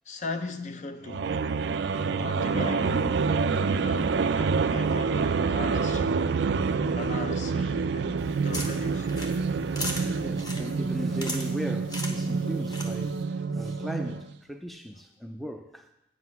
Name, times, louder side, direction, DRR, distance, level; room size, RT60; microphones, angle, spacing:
voice 1, 0.1-1.4 2.2-6.2 6.8-9.1, left 3 dB, 40° left, 0.6 m, -38 dB
sound 1, 1.1-14.3, right 5 dB, 70° right, 0.4 m, -27 dB
voice 2, 2.1-2.4 6.8-7.1 10.2-15.9, equal, ahead, 0.4 m, -38 dB
sound 2, 8.2-13.2, left 1 dB, 20° left, 1.0 m, -39 dB
8.3 x 7.8 x 5.8 m
head